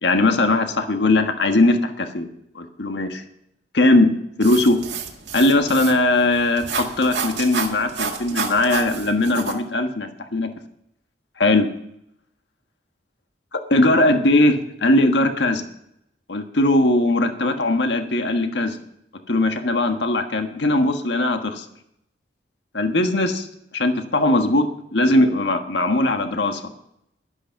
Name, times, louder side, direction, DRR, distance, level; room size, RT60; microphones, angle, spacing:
voice 1, 0.0-2.3 2.5-3.2 3.7-4.1 4.4-4.8 5.3-10.5 11.4-11.7 13.7-15.7 16.3-18.8 19.3-21.6 22.7-23.5 23.7-24.7 24.9-26.7, left 2 dB, 75° left, 6 dB, 1.5 m, -19 dB
sound 1, 4.4-9.5, right 5 dB, 85° right, 1.9 m, -30 dB
12.0 x 11.5 x 5.7 m, 0.76 s
head